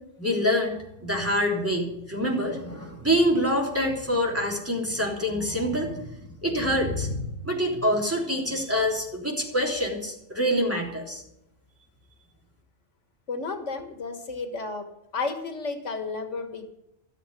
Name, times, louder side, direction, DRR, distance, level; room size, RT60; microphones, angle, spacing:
voice 1, 0.2-11.2, equal, 10° right, -2 dB, 3.5 m, -26 dB
voice 2, 13.3-14.9 15.1-16.7, left 4 dB, 85° left, 6 dB, 1.9 m, -32 dB
14.0 x 7.4 x 9.8 m, 0.83 s
omnidirectional pair, 1.2 m